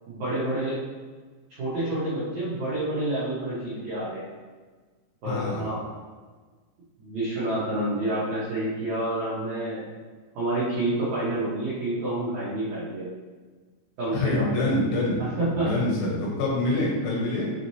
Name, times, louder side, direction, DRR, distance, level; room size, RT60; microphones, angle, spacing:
voice 1, 0.1-0.8 1.6-4.3 5.2-5.9 7.0-9.8 10.3-13.1 14.0-14.5 15.2-15.8, right 1 dB, 90° right, -9 dB, 1.6 m, -28 dB
voice 2, 5.3-5.6 14.1-15.2 15.5-17.5, left 2 dB, 80° left, -4 dB, 3.1 m, -26 dB
6.4 x 3.1 x 2.7 m, 1.4 s
omnidirectional pair, 4.8 m